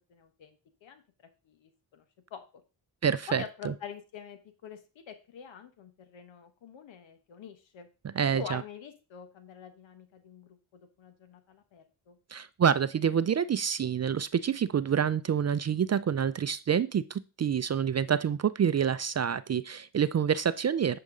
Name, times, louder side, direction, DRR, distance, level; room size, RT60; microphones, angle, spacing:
voice 1, 0.1-0.6 0.8-1.0 1.4-2.0 2.3-2.4 3.3-7.9 8.3-12.2, left 7 dB, 85° left, 8 dB, 1.1 m, -46 dB
voice 2, 3.0-3.7 8.1-8.6 12.3-21.0, right 8 dB, 35° right, 15 dB, 0.4 m, -27 dB
9.5 x 5.2 x 3.7 m, 0.32 s
cardioid pair, 60°, 45 cm